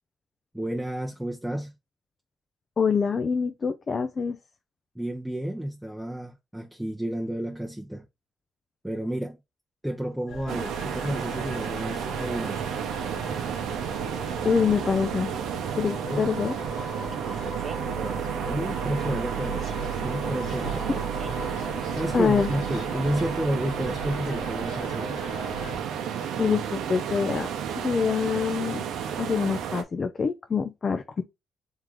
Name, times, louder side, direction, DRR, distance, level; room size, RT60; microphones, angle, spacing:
voice 1, 0.5-1.7 4.9-8.0 8.8-9.4 9.8-12.8 16.0-16.3 17.9-19.8 20.0-21.1 21.9-25.3, right 1 dB, 5° right, 0.7 m, -31 dB
voice 2, 2.8-4.4 14.4-15.3 15.8-16.5 22.1-22.5 26.4-27.5 27.8-28.8 29.2-31.2, left 6 dB, 40° left, 0.5 m, -25 dB
sound 1, 10.3-25.8, right 2 dB, 85° left, 1.7 m, -37 dB
sound 2, 10.5-29.8, right 8 dB, 80° right, 0.7 m, -32 dB
Male speech man speaking, 17.1-18.0 20.5-21.3, right 4 dB, 40° right, 0.7 m, -41 dB
3.7 x 3.1 x 3.5 m
cardioid pair, 90°, 0 cm